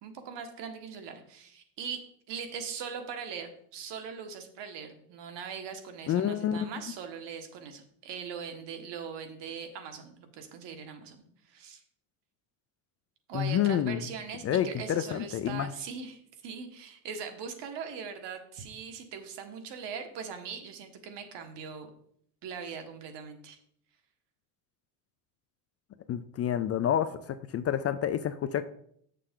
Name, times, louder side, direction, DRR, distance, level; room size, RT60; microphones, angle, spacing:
voice 1, 0.0-11.8 13.3-21.9 22.4-23.6, right 6 dB, 60° right, 7 dB, 1.6 m, -41 dB
voice 2, 6.1-6.7 13.3-14.0 14.4-15.7 26.1-28.6, left 10 dB, 35° left, 11 dB, 0.4 m, -28 dB
7.8 x 6.6 x 3.7 m, 0.67 s
cardioid pair, 125°, 46 cm